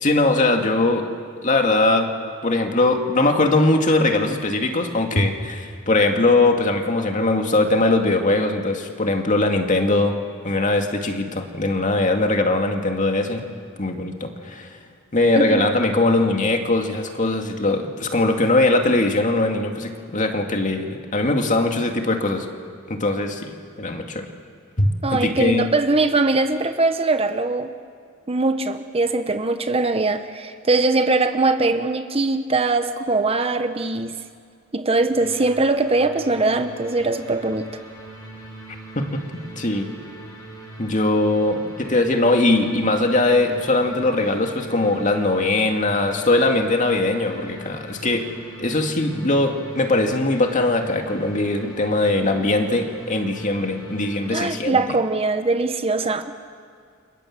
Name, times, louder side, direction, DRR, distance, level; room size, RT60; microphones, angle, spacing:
voice 1, 0.0-1.1 1.4-2.1 2.4-10.2 10.4-13.5 13.8-14.8 15.1-22.5 22.9-24.3 24.8-25.7 39.0-39.9 40.8-48.3 48.6-54.8, left 2 dB, 40° left, 4 dB, 2.3 m, -21 dB
voice 2, 15.4-15.7 25.0-27.7 28.3-34.2 34.7-37.7 54.3-56.3, right 3 dB, 30° right, 8 dB, 1.0 m, -21 dB
sound 1, 35.1-54.5, right 2 dB, 20° left, 5.1 m, -41 dB
29.5 x 26.0 x 7.5 m, 2.1 s
head